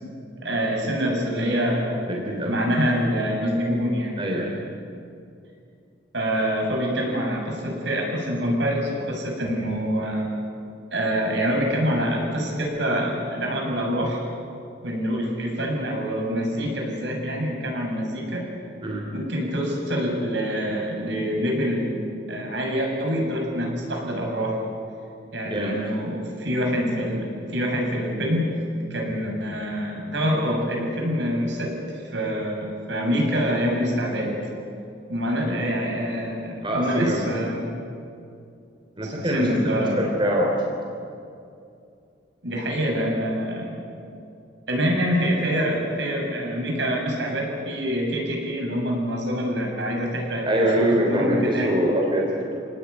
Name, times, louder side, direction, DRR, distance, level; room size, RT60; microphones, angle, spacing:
voice 1, 0.4-2.0 2.4-4.2 6.1-10.3 10.9-14.2 14.8-18.5 19.1-24.6 25.3-28.5 28.9-34.4 35.1-37.7 39.0-40.0 42.4-43.8 44.7-51.7, equal, 65° right, 0 dB, 7.4 m, -26 dB
voice 2, 2.1-2.6 4.2-4.6 18.8-19.0 25.4-25.8 35.4-35.6 36.6-37.2 39.0-40.8 50.4-52.6, right 1 dB, 25° right, -1 dB, 3.3 m, -24 dB
28.0 x 18.5 x 9.7 m, 2.5 s
head